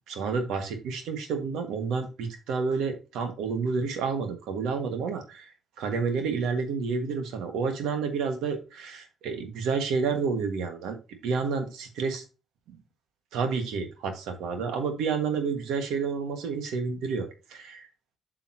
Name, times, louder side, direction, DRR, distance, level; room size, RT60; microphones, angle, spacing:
voice 1, 0.1-11.0 11.2-12.2 12.7-12.8 13.3-17.9, right 5 dB, 90° right, 6 dB, 1.5 m, -30 dB
7.6 x 6.8 x 2.8 m, 0.31 s
cardioid pair, 90°, 0 cm